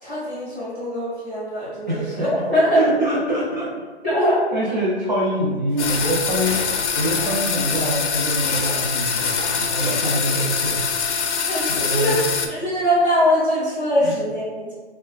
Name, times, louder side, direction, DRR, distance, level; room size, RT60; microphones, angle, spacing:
voice 1, 0.0-2.8 4.0-4.4 9.8-10.0 11.4-14.7, equal, 10° right, -16 dB, 0.7 m, -22 dB
voice 2, 1.9-3.8 4.5-6.7 7.0-10.9 11.7-12.3 14.0-14.1, right 1 dB, 40° right, -7 dB, 0.4 m, -25 dB
sound 1, 5.7-12.7, left 1 dB, 45° left, 0.9 m, -36 dB
sound 2, 5.8-12.5, left 6 dB, 85° left, 0.5 m, -24 dB
3.9 x 2.1 x 2.2 m, 1.3 s
hypercardioid pair, 175°, 34 cm